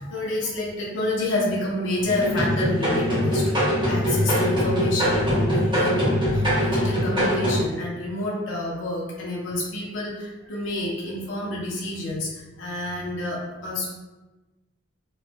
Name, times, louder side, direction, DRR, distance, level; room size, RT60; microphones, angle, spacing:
voice 1, 0.0-13.9, left 2 dB, 85° left, -4 dB, 0.6 m, -29 dB
sound 1, 2.0-7.6, equal, 25° right, 1.1 m, -22 dB
3.1 x 2.5 x 2.2 m, 1.1 s
head